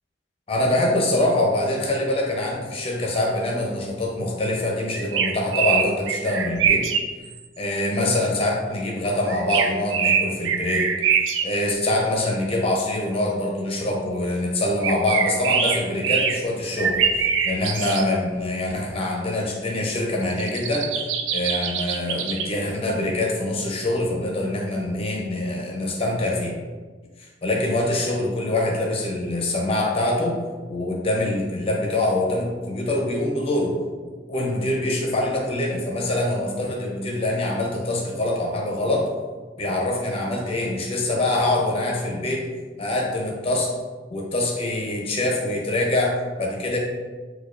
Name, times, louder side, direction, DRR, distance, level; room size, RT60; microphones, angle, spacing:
voice 1, 0.5-6.9 7.6-10.9 11.4-20.9 21.3-26.6 27.2-30.4 30.7-33.8 34.3-39.1 39.6-42.5 42.8-43.7 44.1-46.8, left 1 dB, 30° left, -1 dB, 0.6 m, -24 dB
sound 1, 4.9-7.0 7.3-7.4 9.3-11.5 14.8-16.4 16.8-18.0 18.4-18.5 20.3-22.5, right 7 dB, 85° right, 0.3 m, -23 dB
4.4 x 2.3 x 2.4 m, 1.4 s
head